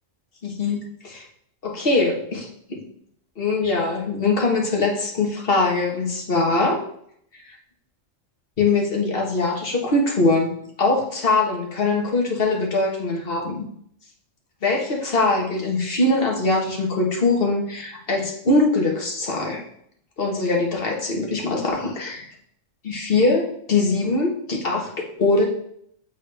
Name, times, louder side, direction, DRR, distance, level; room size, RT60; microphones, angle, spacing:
voice 1, 0.4-1.3 1.6-2.8 3.4-6.8 8.6-10.5 10.8-13.6 14.6-19.6 20.2-22.3 22.8-25.5, left 3 dB, 45° left, -1 dB, 1.4 m, -22 dB
8.2 x 3.7 x 3.3 m, 0.67 s
omnidirectional pair, 1.4 m